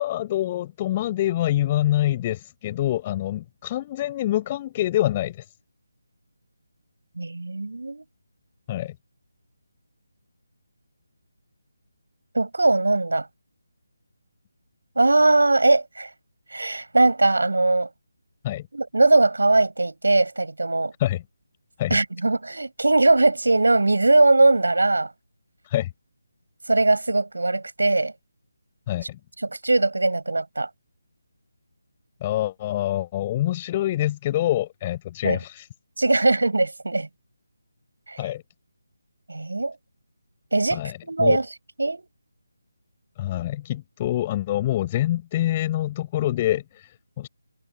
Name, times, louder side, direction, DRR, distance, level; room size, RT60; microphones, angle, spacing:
voice 1, 0.0-5.5 8.7-8.9 18.4-18.7 21.0-21.2 21.8-22.0 25.6-25.9 28.9-29.2 32.2-35.7 38.2-38.4 40.7-41.4 43.2-47.3, left 13 dB, 20° left, 6.7 m, -26 dB
voice 2, 7.2-8.0 12.3-13.3 15.0-16.1 16.5-17.9 18.7-20.9 21.9-25.1 26.7-28.1 29.4-30.7 35.2-35.4 36.0-37.1 38.1-38.2 39.3-39.8 40.5-41.5 41.8-42.1, right 2 dB, 65° right, 7.5 m, -20 dB
figure-of-eight pair, 155°, 0 cm